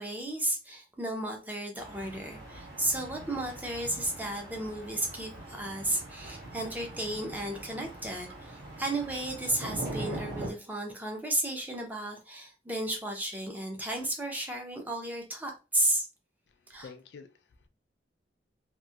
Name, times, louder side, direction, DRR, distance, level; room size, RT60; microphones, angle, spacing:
voice 1, 0.0-16.1 16.7-16.9, right 1 dB, 10° right, 0.6 m, -33 dB
sound 1, 1.8-10.5, right 2 dB, 70° right, 1.4 m, -42 dB
voice 2, 16.5-17.7, left 5 dB, 75° left, 0.4 m, -50 dB
2.9 x 2.6 x 2.3 m
head